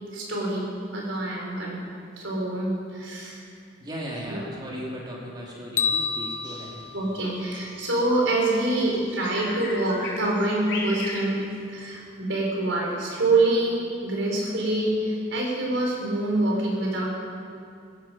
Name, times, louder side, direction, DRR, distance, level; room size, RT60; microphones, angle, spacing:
voice 1, 0.1-1.8 2.2-3.4 4.3-4.4 6.9-11.4 11.7-17.1, right 2 dB, 85° right, -2 dB, 4.5 m, -26 dB
voice 2, 3.8-6.7, equal, 25° right, -4 dB, 2.9 m, -36 dB
sound 1, 5.8-8.0, left 5 dB, 40° left, 0.8 m, -30 dB
Bird vocalization bird call bird song, 6.4-11.9, left 2 dB, 65° left, 4.3 m, -38 dB
16.5 x 13.5 x 5.7 m, 2.5 s
head